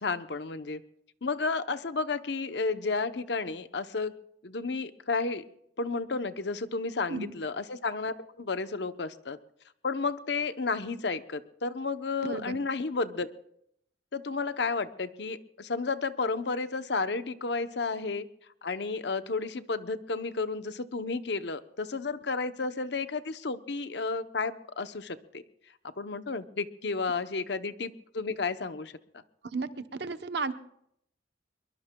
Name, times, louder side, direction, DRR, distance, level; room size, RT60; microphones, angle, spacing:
voice 1, 0.0-0.8 1.2-4.1 4.4-5.4 5.8-9.4 9.8-13.3 14.1-18.3 18.6-25.4 25.8-28.9, left 4 dB, 65° left, 11 dB, 0.8 m, -32 dB
voice 2, 12.2-12.6 29.5-30.5, right 4 dB, 60° right, 11 dB, 0.8 m, -34 dB
24.0 x 22.5 x 2.3 m, 0.72 s
head